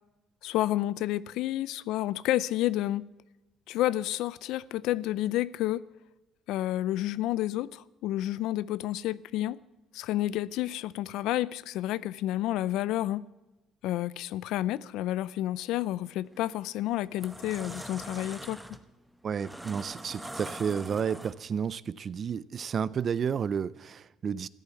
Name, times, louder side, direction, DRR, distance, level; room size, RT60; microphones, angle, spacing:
voice 1, 0.4-3.0 3.7-5.8 6.5-9.6 9.9-13.2 13.8-18.6, left 14 dB, 80° left, 0.5 m, -30 dB
sound 1, 16.3-16.5 17.0-21.6, right 1 dB, 5° right, 1.0 m, -43 dB
voice 2, 19.2-24.5, right 7 dB, 45° right, 0.5 m, -31 dB
14.0 x 10.5 x 8.1 m
cardioid pair, 105°, 0 cm